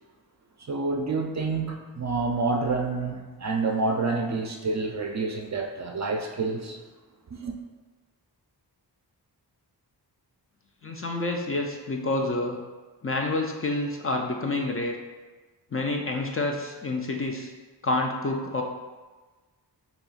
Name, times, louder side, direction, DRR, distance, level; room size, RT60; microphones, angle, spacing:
voice 1, 0.6-6.8 7.3-7.5, right 3 dB, 40° right, 0.4 m, -28 dB
voice 2, 10.8-12.6 13.0-15.0 15.7-17.5 17.8-18.6, left 2 dB, 35° left, 0.4 m, -28 dB
5.3 x 2.9 x 2.4 m
wide cardioid pair, 85°, 42 cm